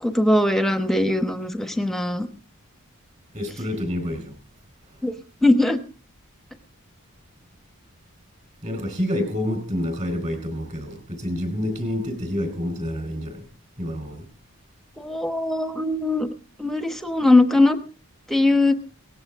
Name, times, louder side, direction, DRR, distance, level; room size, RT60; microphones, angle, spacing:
voice 1, 0.0-2.3 5.0-5.1 5.4-5.8 15.0-16.3 16.6-17.8 18.3-18.8, left 2 dB, ahead, 1.1 m, -20 dB
voice 2, 3.3-4.3 8.6-13.5 13.8-14.3, left 1 dB, 30° right, 4.4 m, -28 dB
18.5 x 15.5 x 3.6 m
head